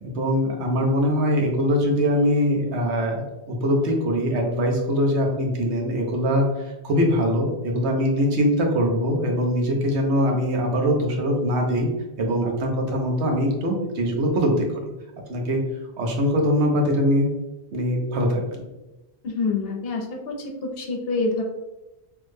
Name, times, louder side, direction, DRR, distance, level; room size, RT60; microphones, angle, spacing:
voice 1, 0.0-11.9 12.2-14.5 15.3-15.6 16.0-17.3 17.7-18.6, equal, 90° right, 1 dB, 1.0 m, -22 dB
voice 2, 19.2-20.3 20.8-21.4, left 4 dB, 65° left, 1 dB, 0.8 m, -26 dB
3.4 x 2.0 x 3.1 m, 1.0 s
omnidirectional pair, 1.1 m